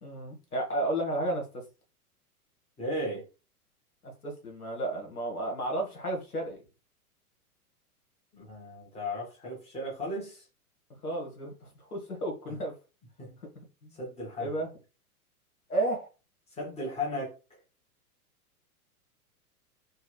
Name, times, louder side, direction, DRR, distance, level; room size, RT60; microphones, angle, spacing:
voice 1, 0.0-1.6 4.0-6.6 11.0-12.7 13.6-14.0 14.4-14.7 15.7-16.1, right 1 dB, 75° left, 1.7 m, -33 dB
voice 2, 2.8-3.3 8.3-10.4 12.5-12.6 13.2-13.4 13.9-14.6 16.6-17.6, left 1 dB, 15° left, 1.6 m, -36 dB
3.6 x 2.7 x 3.2 m
figure-of-eight pair, 100°, 45 cm